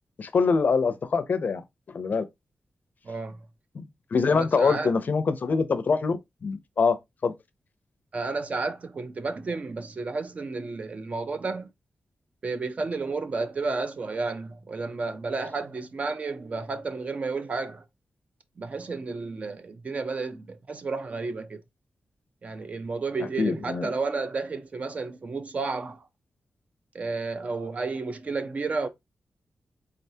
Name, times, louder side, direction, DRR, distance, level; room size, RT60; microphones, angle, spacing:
voice 1, 0.2-1.6 1.9-2.2 3.7-7.0 7.2-7.3 23.4-23.9, left 4 dB, 55° left, 0.5 m, -24 dB
voice 2, 3.0-3.5 4.2-4.9 8.1-11.7 12.4-17.8 18.6-21.6 22.4-26.1 26.9-28.9, right 3 dB, 40° right, 0.5 m, -32 dB
3.8 x 3.3 x 2.7 m
wide cardioid pair, 130°, 4 cm